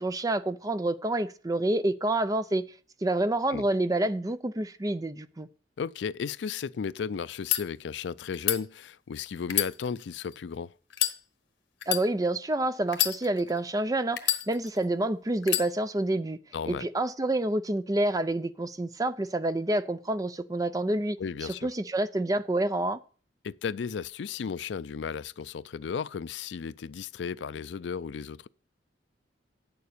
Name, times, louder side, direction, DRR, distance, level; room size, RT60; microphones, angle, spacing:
voice 1, 0.0-2.6 3.0-5.5 11.9-16.4 16.7-21.2 21.6-23.0, right 1 dB, 20° right, 0.5 m, -28 dB
voice 2, 5.8-10.7 16.5-16.9 21.2-21.7 23.4-28.5, left 6 dB, 70° left, 0.4 m, -34 dB
sound 1, 7.3-7.6 8.3-8.6 9.4-10.3 10.9-11.2 11.8-12.0 12.9-13.6 14.2-14.8 15.4-15.7, left 13 dB, 90° left, 1.2 m, -28 dB
9.3 x 6.9 x 6.6 m
head